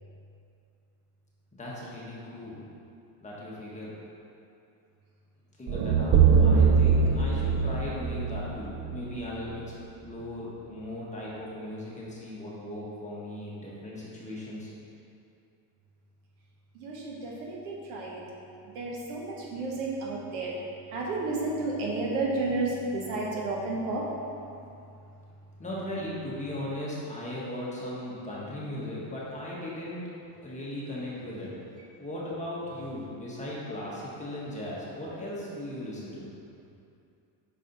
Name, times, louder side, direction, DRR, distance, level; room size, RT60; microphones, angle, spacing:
voice 1, 1.5-2.6 3.2-3.9 5.6-9.7 10.0-14.7 25.6-30.0 30.4-31.5 32.0-36.3, left 1 dB, 15° left, -6 dB, 1.3 m, -37 dB
sound 1, 5.7-9.8, right 6 dB, 30° right, 0.4 m, -23 dB
voice 2, 16.7-18.2 18.6-20.5 20.9-24.1, right 2 dB, 85° right, -3 dB, 1.4 m, -32 dB
5.9 x 4.8 x 4.0 m, 2.6 s
cardioid pair, 120°, 46 cm